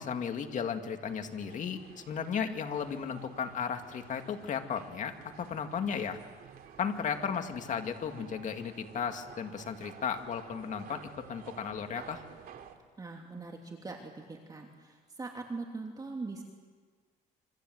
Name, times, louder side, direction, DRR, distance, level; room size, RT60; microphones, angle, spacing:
voice 1, 0.0-6.2 6.8-12.2, left 7 dB, 45° left, 6 dB, 2.3 m, -35 dB
sound 1, 1.0-12.7, right 8 dB, 60° right, 2.9 m, -52 dB
voice 2, 13.0-16.4, right 3 dB, 20° right, 1 dB, 2.9 m, -41 dB
27.0 x 25.5 x 7.9 m, 1.5 s
cardioid pair, 110°, 17 cm